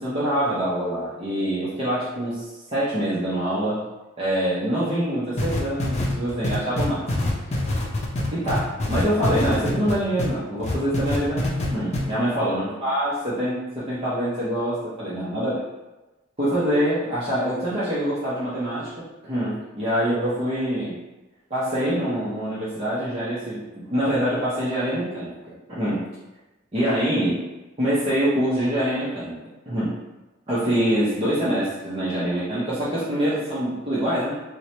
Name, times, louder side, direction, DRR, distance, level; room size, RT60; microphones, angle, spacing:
voice 1, 0.0-3.8 4.2-7.3 8.3-15.6 16.4-21.0 21.5-25.3 25.7-26.0 26.7-27.4 27.8-29.4 29.7-30.0 30.5-34.3, equal, 30° right, -10 dB, 0.7 m, -25 dB
sound 1, 5.4-10.3 10.6-11.7 11.9-12.0, left 1 dB, 35° left, 0.5 m, -24 dB
4.5 x 2.1 x 2.8 m, 1.1 s
head